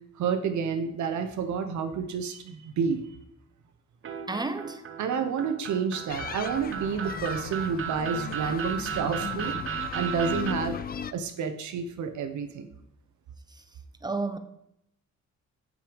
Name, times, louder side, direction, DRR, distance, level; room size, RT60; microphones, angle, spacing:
voice 1, 0.2-3.0 5.0-10.8 11.1-12.7, right 6 dB, 70° right, 1.1 m, -30 dB
sound 1, 4.0-10.5, right 9 dB, 45° right, 0.9 m, -35 dB
voice 2, 4.3-4.8 13.5-13.6 14.0-14.4, right 3 dB, 15° right, 0.8 m, -31 dB
sound 2, 6.1-11.1, left 7 dB, 30° left, 0.4 m, -37 dB
7.5 x 5.5 x 5.3 m
cardioid pair, 90°, 30 cm